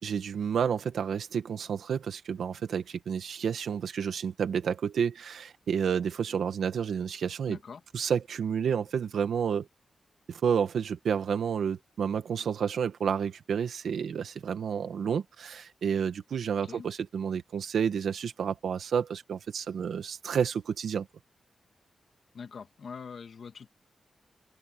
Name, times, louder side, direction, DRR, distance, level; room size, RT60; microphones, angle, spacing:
voice 1, 0.0-7.6 7.9-9.7 10.3-21.1, right 7 dB, 85° right, 1.8 m, -30 dB
voice 2, 7.5-7.8 16.6-16.9 22.3-23.7, left 6 dB, 60° left, 1.9 m, -43 dB
wide cardioid pair, 130°, 0 cm